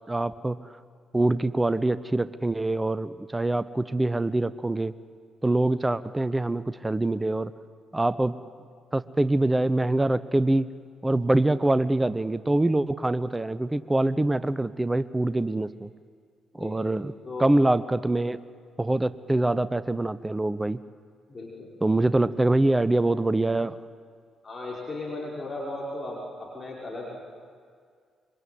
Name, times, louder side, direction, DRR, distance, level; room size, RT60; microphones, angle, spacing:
voice 1, 0.1-0.6 1.1-4.9 5.4-7.5 7.9-8.4 8.9-10.7 11.0-15.9 16.5-17.1 17.4-18.4 18.8-20.8 21.8-23.8, right 2 dB, 15° right, 16 dB, 0.7 m, -24 dB
voice 2, 21.3-21.7 22.5-22.8 24.4-27.2, left 2 dB, 30° left, -4 dB, 5.3 m, -36 dB
26.0 x 24.0 x 7.8 m, 2.1 s
figure-of-eight pair, 40°, 0 cm